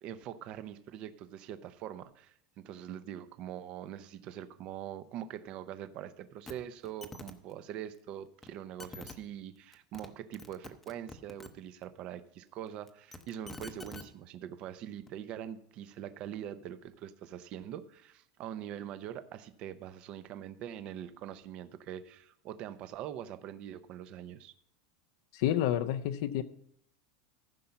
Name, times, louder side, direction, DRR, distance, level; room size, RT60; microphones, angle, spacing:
voice 1, 0.0-24.5, right 10 dB, 40° right, 12 dB, 0.7 m, -43 dB
sound 1, 6.5-6.6 6.8-7.3 8.4-8.5 8.8-9.1 9.7-10.1 10.3-11.5 12.9-14.0 15.1-15.2, left 2 dB, 10° left, 0.8 m, -46 dB
voice 2, 25.3-26.4, left 11 dB, 65° left, 8 dB, 0.6 m, -29 dB
14.5 x 5.5 x 5.8 m, 0.71 s
supercardioid pair, 155°, 3 cm